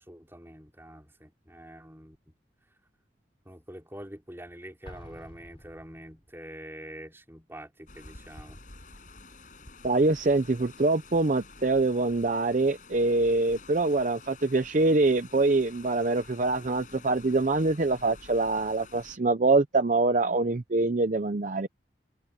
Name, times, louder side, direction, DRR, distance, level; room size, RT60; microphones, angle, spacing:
voice 1, 0.0-2.2 3.5-8.6, right 1 dB, 15° right, 4.3 m, -45 dB
Explosion, 4.8-6.5, equal, 30° left, 4.1 m, -49 dB
sound 1, 7.9-19.2, left 3 dB, 45° left, 7.0 m, -50 dB
voice 2, 9.8-21.7, right 3 dB, 45° right, 0.6 m, -24 dB
head